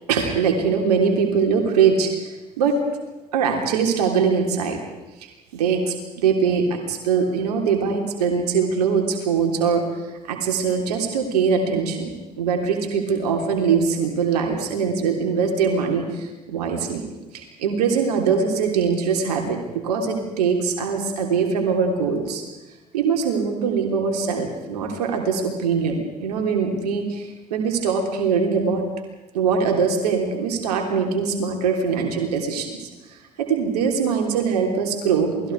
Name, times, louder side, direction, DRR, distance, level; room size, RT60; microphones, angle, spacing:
voice 1, 0.1-2.8 3.3-4.8 5.5-9.8 10.2-12.1 12.4-17.0 17.3-22.4 22.9-28.8 29.3-32.9 33.4-35.5, right 6 dB, 75° right, 3 dB, 3.4 m, -22 dB
28.0 x 20.0 x 4.8 m, 1.1 s
figure-of-eight pair, 55°, 20 cm